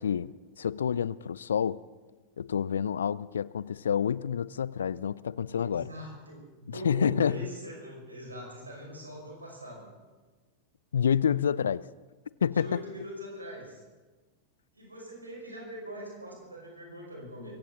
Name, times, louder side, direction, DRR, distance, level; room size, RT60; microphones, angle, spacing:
voice 1, 0.0-1.8 2.4-5.9 6.7-7.4 10.9-11.9 12.4-12.8, left 8 dB, 65° left, 21 dB, 0.4 m, -28 dB
voice 2, 5.5-9.9 12.5-13.8 14.8-17.5, equal, 80° right, -1 dB, 5.7 m, -42 dB
24.0 x 15.5 x 3.9 m, 1.3 s
figure-of-eight pair, 90°, 0 cm